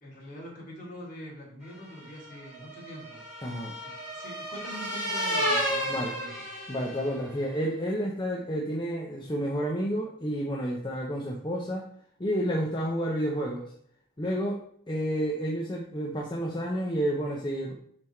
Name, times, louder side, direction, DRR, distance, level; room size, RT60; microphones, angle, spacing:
voice 1, 0.0-3.2 3.8-6.4, equal, 45° left, -4 dB, 2.6 m, -44 dB
sound 1, 1.9-7.3, equal, 5° right, 2.6 m, -32 dB
voice 2, 3.4-3.7 5.9-6.1 6.7-11.8 12.2-13.7 14.2-14.6 14.9-17.7, equal, 25° left, -2 dB, 0.7 m, -30 dB
5.7 x 4.8 x 4.4 m, 0.66 s
head